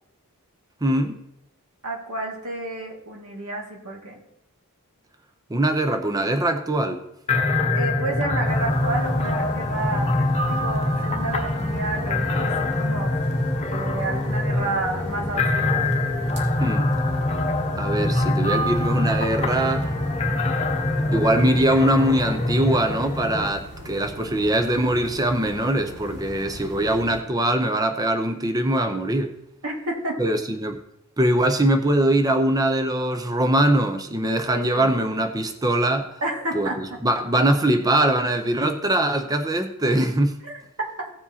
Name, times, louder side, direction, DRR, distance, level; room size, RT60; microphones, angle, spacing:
voice 1, 0.8-1.2 5.5-7.0 16.6-16.9 17.8-19.9 21.1-29.4 30.2-30.8 31.2-36.2 36.5-40.4, right 1 dB, 15° right, 0.6 m, -22 dB
voice 2, 1.8-4.2 7.7-10.1 10.5-13.1 13.7-15.9 29.6-30.2 34.5-34.9 36.2-36.8 40.4-40.6, right 2 dB, 75° right, 2.1 m, -30 dB
sound 1, 7.3-23.5, left 2 dB, 30° left, 0.9 m, -24 dB
sound 2, 8.4-27.2, equal, 50° right, 2.3 m, -39 dB
16.5 x 7.2 x 2.8 m
head